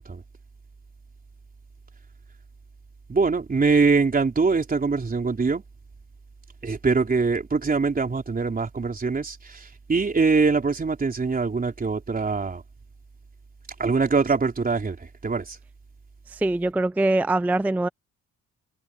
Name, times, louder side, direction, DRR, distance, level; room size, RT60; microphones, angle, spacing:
voice 1, 3.1-5.6 6.6-12.6 13.8-15.6, right 4 dB, 30° right, 3.9 m, -23 dB
voice 2, 16.3-17.9, right 2 dB, 5° right, 0.4 m, -23 dB
cardioid pair, 90°, 30 cm